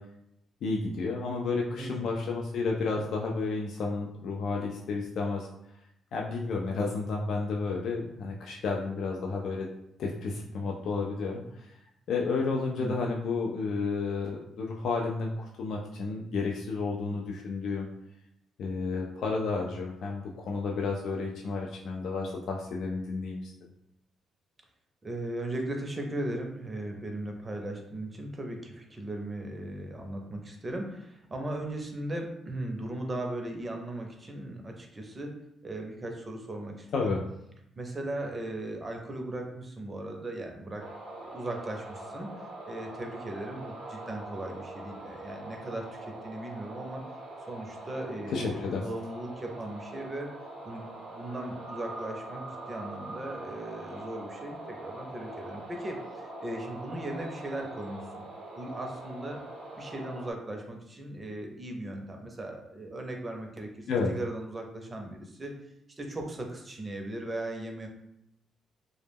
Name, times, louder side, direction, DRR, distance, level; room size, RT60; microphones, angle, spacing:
voice 1, 0.6-5.5 6.1-9.7 10.0-11.7 12.1-17.9 18.6-23.5 36.9-37.2 48.3-48.9 63.9-64.1, left 4 dB, 70° left, -1 dB, 0.3 m, -31 dB
voice 2, 1.8-2.1 12.5-13.0 25.0-35.4 35.6-37.1 37.8-40.9 41.1-47.0 47.5-50.3 50.6-58.0 58.6-59.4 59.7-65.5 66.0-67.9, right 1 dB, 25° right, 2 dB, 0.5 m, -38 dB
sound 1, 40.8-60.3, right 2 dB, 70° right, 0.7 m, -43 dB
2.1 x 2.1 x 3.3 m, 0.79 s
cardioid pair, 90°, 0 cm